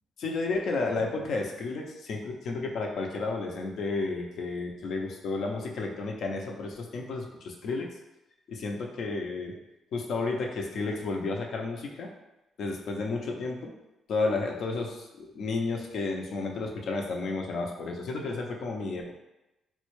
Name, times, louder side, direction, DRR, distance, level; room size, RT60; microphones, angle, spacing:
voice 1, 0.2-7.9 8.5-9.6 9.9-12.1 12.6-13.7 14.1-19.1, left 3 dB, 65° left, 1 dB, 0.6 m, -32 dB
3.9 x 2.2 x 3.1 m, 0.96 s
cardioid pair, 90°, 0 cm